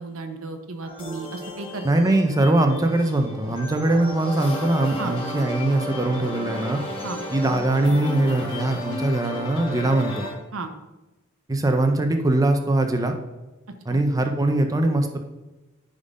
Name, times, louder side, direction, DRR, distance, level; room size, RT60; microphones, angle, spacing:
voice 1, 0.0-1.9 5.0-5.1 7.0-7.2 10.5-10.7 13.9-14.0, right 3 dB, 75° right, 6 dB, 0.9 m, -33 dB
sound 1, 0.8-10.3, left 1 dB, 25° left, 1.7 m, -33 dB
voice 2, 1.8-6.8 7.3-10.3 11.5-13.2 13.9-15.2, right 2 dB, 15° right, 5 dB, 0.6 m, -21 dB
9.9 x 3.8 x 5.2 m, 1.1 s
head